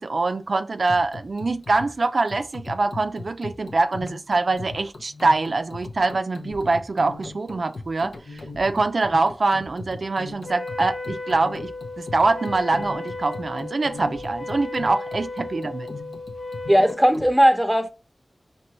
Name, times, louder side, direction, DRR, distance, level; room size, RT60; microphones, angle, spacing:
voice 1, 0.0-15.9, right 3 dB, 75° right, 0.3 m, -24 dB
sound 1, 0.9-17.3, left 2 dB, 90° left, 0.8 m, -39 dB
Wind instrument woodwind instrument, 10.4-17.0, left 2 dB, 65° left, 0.8 m, -35 dB
voice 2, 16.7-17.9, equal, ahead, 0.8 m, -17 dB
4.5 x 2.8 x 3.0 m
wide cardioid pair, 50°, 0 cm